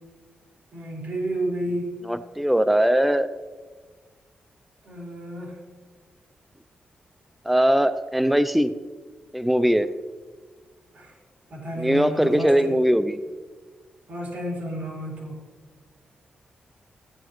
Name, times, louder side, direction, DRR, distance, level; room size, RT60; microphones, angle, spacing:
voice 1, 0.7-2.0 4.8-5.6 10.9-11.2 11.5-12.8 14.1-15.4, right 1 dB, 55° right, -3 dB, 3.9 m, -31 dB
voice 2, 2.0-3.3 7.4-8.7 9.3-9.9 11.8-13.2, equal, ahead, 12 dB, 0.4 m, -20 dB
14.5 x 10.0 x 3.1 m, 1.4 s
cardioid pair, 80°, 3 cm